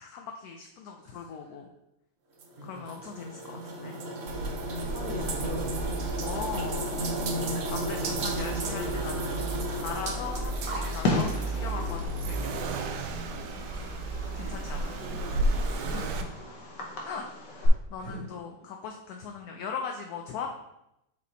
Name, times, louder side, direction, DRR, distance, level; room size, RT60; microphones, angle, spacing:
voice 1, 0.0-1.7 2.6-4.0 6.2-7.0 7.7-12.9 14.3-15.0 15.9-16.3 17.0-17.3 17.5-20.5, left 6 dB, 70° left, 3 dB, 1.0 m, -39 dB
sound 1, 2.4-12.0, right 2 dB, 55° right, 0.8 m, -34 dB
Accelerating revving vroom, 4.3-16.2, right 2 dB, 85° right, 1.2 m, -33 dB
voice 2, 4.7-5.9 12.1-12.4 13.3-14.0 15.0-16.1 18.0-18.2, equal, 25° left, -5 dB, 1.9 m, -42 dB
Fireworks, 9.7-17.7, left 2 dB, 85° left, 1.7 m, -36 dB
5.0 x 4.7 x 4.0 m, 0.85 s
omnidirectional pair, 1.8 m